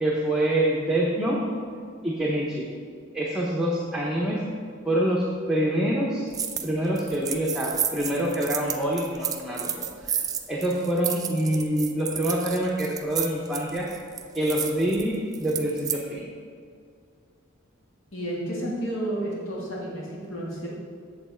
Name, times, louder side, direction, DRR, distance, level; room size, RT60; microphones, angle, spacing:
voice 1, 0.0-1.4 2.0-2.7 3.1-4.4 4.8-6.3 6.6-9.7 10.0-10.2 10.5-13.9 14.3-15.1 15.4-16.3, right 1 dB, 5° right, -4 dB, 0.8 m, -26 dB
sound 1, 6.3-6.7 7.0-16.0, right 8 dB, 20° right, 0.4 m, -31 dB
voice 2, 18.1-20.7, right 1 dB, 75° left, -5 dB, 2.1 m, -31 dB
7.9 x 7.2 x 4.4 m, 2.2 s
head